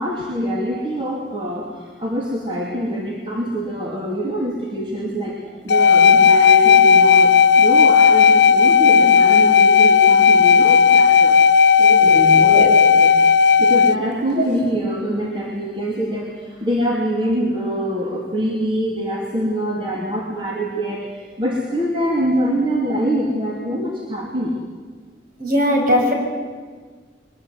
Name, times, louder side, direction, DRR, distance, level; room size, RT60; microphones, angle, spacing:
voice 1, 0.0-5.4 5.6-11.4 11.8-12.6 12.9-13.1 13.6-24.6, equal, 30° right, -3 dB, 2.8 m, -24 dB
sound 1, 5.7-14.0, left 6 dB, 70° left, 0.6 m, -12 dB
voice 2, 12.3-12.7 14.4-14.5 25.4-26.1, equal, 50° right, 0 dB, 5.9 m, -19 dB
22.5 x 21.0 x 8.1 m, 1.5 s
head